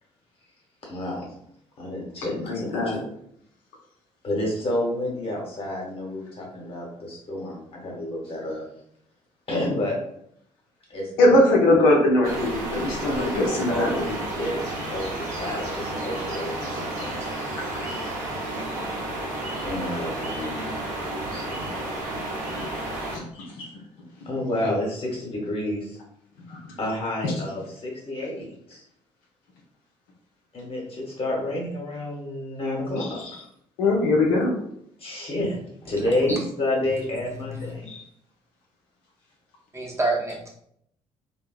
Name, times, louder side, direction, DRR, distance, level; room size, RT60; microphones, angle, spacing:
voice 1, 0.8-1.3 1.8-3.0 4.2-8.6 9.5-10.0 10.9-11.1 13.1-17.5 19.6-20.8 21.1-21.7 23.3-23.7 24.2-26.0 26.8-28.8 30.5-33.2 35.0-35.6 35.9-37.9, left 1 dB, 35° left, -2 dB, 1.0 m, -30 dB
voice 2, 2.3-3.0 11.2-14.2 23.1-23.2 33.8-34.5 37.9-38.0, left 1 dB, 65° left, -2 dB, 0.6 m, -20 dB
sound 1, 12.2-23.2, right 1 dB, 55° right, 0.7 m, -31 dB
voice 3, 36.0-36.4 37.5-37.7 39.7-40.5, right 2 dB, 15° right, -2 dB, 0.7 m, -27 dB
2.7 x 2.1 x 2.3 m, 0.71 s
figure-of-eight pair, 50°, 16 cm